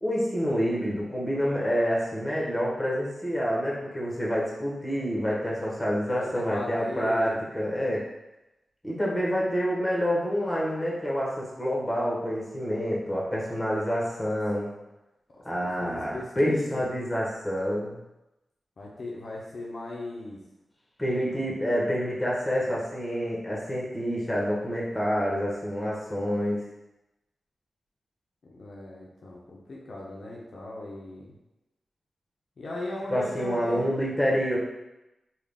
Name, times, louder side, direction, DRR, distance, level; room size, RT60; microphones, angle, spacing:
voice 1, 0.0-8.0 8.8-14.7 15.4-18.0 21.0-26.6 33.1-34.6, equal, 15° left, -4 dB, 1.4 m, -27 dB
voice 2, 6.1-7.4 15.3-15.4 15.8-16.9 18.8-20.4 28.4-31.4 32.6-33.9, left 2 dB, 70° left, -4 dB, 0.6 m, -38 dB
3.6 x 2.4 x 3.5 m, 0.96 s
cardioid pair, 40°, 0 cm